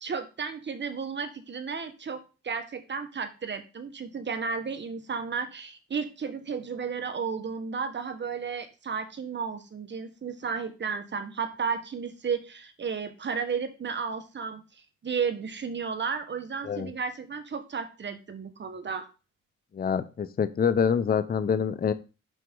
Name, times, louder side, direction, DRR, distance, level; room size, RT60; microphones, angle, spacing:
voice 1, 0.0-14.6 15.0-19.1, right 6 dB, 35° right, 8 dB, 1.3 m, -33 dB
voice 2, 19.7-21.9, left 7 dB, 30° left, 12 dB, 0.7 m, -26 dB
6.2 x 5.8 x 3.7 m, 0.31 s
cardioid pair, 90°, 30 cm